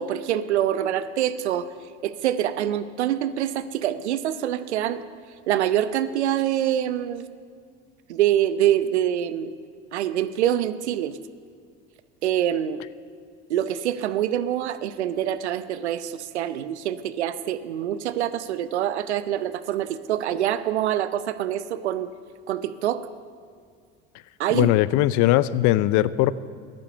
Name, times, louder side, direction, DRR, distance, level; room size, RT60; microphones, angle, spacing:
voice 1, 0.0-1.7 2.0-5.0 5.5-7.2 8.1-9.5 9.9-11.2 12.2-12.8 13.5-22.1 22.5-23.1 24.4-24.7, right 11 dB, 90° right, 13 dB, 0.7 m, -25 dB
voice 2, 24.5-26.3, left 15 dB, 60° left, 18 dB, 0.6 m, -20 dB
15.0 x 10.5 x 6.8 m, 2.1 s
hypercardioid pair, 70°, 33 cm